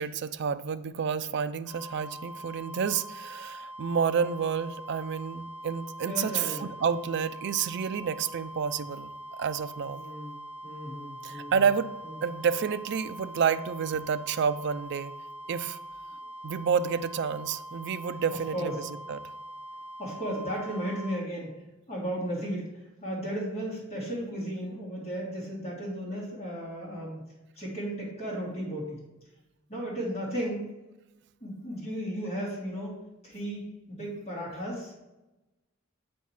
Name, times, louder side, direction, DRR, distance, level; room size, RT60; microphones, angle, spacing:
voice 1, 0.0-9.1 9.4-10.0 11.2-11.9 12.2-15.2 15.5-15.8 16.4-19.2, right 6 dB, 55° right, 12 dB, 0.4 m, -29 dB
sound 1, 1.7-21.2, right 1 dB, 5° right, 2.7 m, -43 dB
voice 2, 6.0-6.7 9.9-10.4 10.6-11.5 18.5-18.7 20.0-21.6 21.9-27.3 27.6-29.0 29.7-30.7 31.4-32.9 33.2-34.9, equal, 30° left, -6 dB, 2.5 m, -35 dB
8.2 x 4.3 x 4.7 m, 1.0 s
head